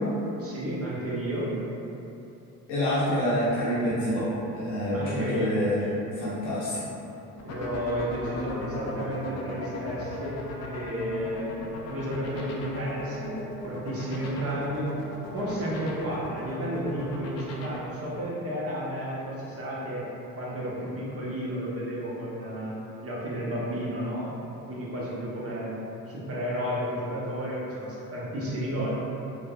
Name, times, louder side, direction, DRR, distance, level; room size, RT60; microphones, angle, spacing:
voice 1, 0.4-1.6 4.9-5.5 7.4-11.5 11.9-13.4 13.6-15.0 15.3-20.0 20.4-22.7 23.0-25.7 26.1-29.0, equal, 30° right, -6 dB, 0.9 m, -32 dB
voice 2, 2.7-4.3 4.6-5.9 6.2-6.8, equal, 60° left, -9 dB, 0.8 m, -26 dB
sound 1, 7.4-17.8, left 3 dB, 35° left, 0.5 m, -37 dB
3.2 x 2.1 x 2.4 m, 2.9 s
hypercardioid pair, 55°, 46 cm